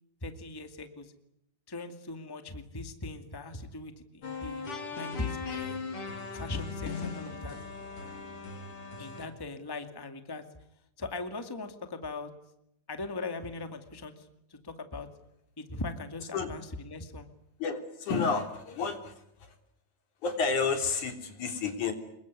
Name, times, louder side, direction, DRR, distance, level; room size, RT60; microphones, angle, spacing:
voice 1, 0.2-1.1 1.7-5.8 6.3-7.6 9.0-10.4 11.0-12.3 12.9-15.1 15.6-17.3, left 3 dB, 10° left, 8 dB, 1.9 m, -39 dB
sound 1, 4.2-9.3, left 4 dB, 45° left, 4.1 m, -38 dB
voice 2, 17.6-19.1 19.4-19.5 20.2-21.9, left 5 dB, 75° left, 7 dB, 4.7 m, -30 dB
27.5 x 22.5 x 9.6 m, 0.81 s
omnidirectional pair, 3.5 m